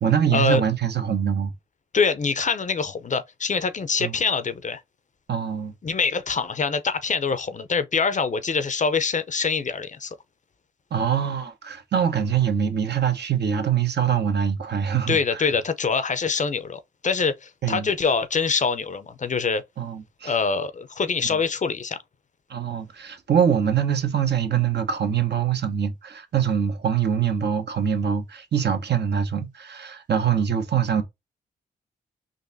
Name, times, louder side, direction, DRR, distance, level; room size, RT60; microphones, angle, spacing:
voice 1, 0.0-1.5 4.0-4.2 5.3-5.7 10.9-15.5 17.6-17.9 19.8-20.3 21.3-21.4 22.5-31.0, right 8 dB, 60° right, 0.9 m, -24 dB
voice 2, 1.9-4.8 5.8-10.2 15.1-19.6 20.2-22.0, left 5 dB, 40° left, 0.6 m, -24 dB
3.9 x 2.6 x 2.6 m
supercardioid pair, 45°, 19 cm